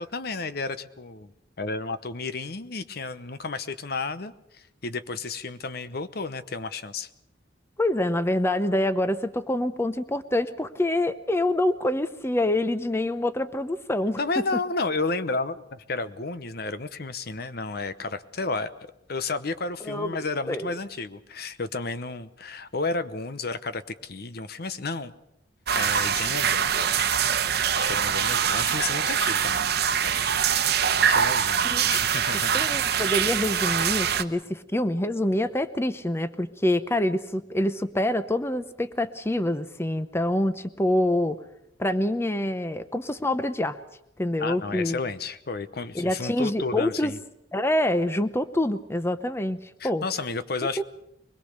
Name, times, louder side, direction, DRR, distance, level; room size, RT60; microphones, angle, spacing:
voice 1, 0.0-1.3 1.6-7.1 14.2-18.7 19.1-25.1 25.7-27.1 27.7-29.8 30.0-32.6 44.4-47.2 49.8-50.8, left 3 dB, 60° left, 13 dB, 0.9 m, -32 dB
voice 2, 7.8-14.2 19.8-20.2 20.5-20.7 31.7-32.0 32.5-41.4 41.8-43.8 44.2-45.0 45.9-47.1 47.5-50.0 50.8-50.9, left 1 dB, 15° left, 12 dB, 0.8 m, -26 dB
sound 1, 25.7-34.2, right 8 dB, 60° right, 1.0 m, -24 dB
23.5 x 21.0 x 6.6 m, 0.80 s
head